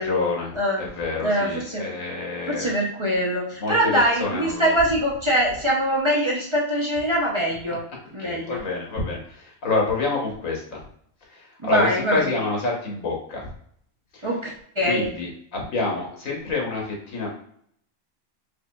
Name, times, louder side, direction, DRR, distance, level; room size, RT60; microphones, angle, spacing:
voice 1, 0.0-0.5 0.8-2.7 3.6-4.7 7.7-7.8 8.2-10.8 11.3-13.4 14.1-14.3 14.8-17.3, left 3 dB, 90° left, -1 dB, 1.5 m, -27 dB
voice 2, 1.2-1.8 2.5-7.8 8.1-8.6 11.6-12.3 14.2-15.1, equal, 30° right, -4 dB, 0.6 m, -23 dB
5.0 x 2.5 x 2.2 m, 0.63 s
omnidirectional pair, 1.4 m